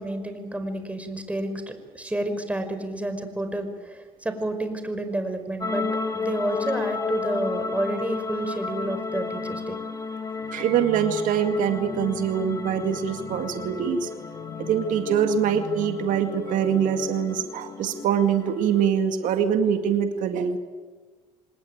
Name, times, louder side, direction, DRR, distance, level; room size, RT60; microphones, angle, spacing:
voice 1, 0.0-5.9 6.1-9.8, right 1 dB, 10° right, 8 dB, 5.1 m, -30 dB
sound 1, 5.6-18.9, left 4 dB, 25° left, 2.9 m, -33 dB
sound 2, 10.4-18.1, left 5 dB, 65° left, 5.1 m, -41 dB
voice 2, 10.5-14.1 14.6-20.6, right 8 dB, 75° right, 7 dB, 2.1 m, -24 dB
26.5 x 20.0 x 9.3 m, 1.4 s
supercardioid pair, 80°, 14 cm